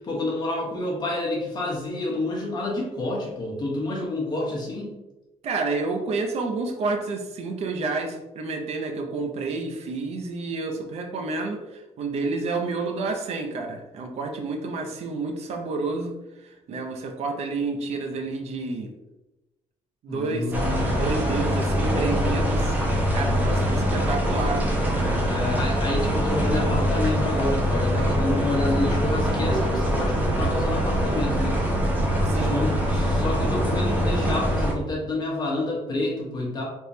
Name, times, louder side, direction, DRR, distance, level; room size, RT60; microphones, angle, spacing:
voice 1, 0.0-4.9 20.1-21.0 25.2-31.7 32.4-36.6, left 2 dB, 35° left, -3 dB, 1.1 m, -28 dB
voice 2, 5.4-16.1 16.4-18.9 20.0-20.6 21.0-22.8 23.1-25.2 32.2-32.6, right 3 dB, 55° right, 3 dB, 0.5 m, -30 dB
sound 1, 20.5-34.7, equal, 15° right, 0.8 m, -23 dB
3.5 x 2.9 x 2.7 m, 1.0 s
cardioid pair, 140°, 13 cm